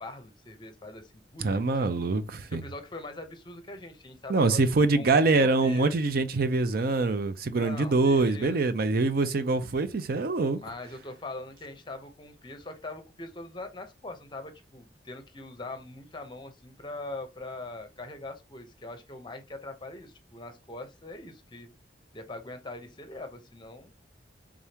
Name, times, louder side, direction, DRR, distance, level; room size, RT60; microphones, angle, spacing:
voice 1, 0.0-2.1 2.5-4.6 4.9-6.0 7.6-8.6 10.6-21.7 22.1-23.9, left 2 dB, 25° left, 0.7 m, -42 dB
voice 2, 1.4-2.6 4.3-10.6, right 3 dB, 55° right, 0.5 m, -24 dB
3.6 x 3.5 x 2.8 m
head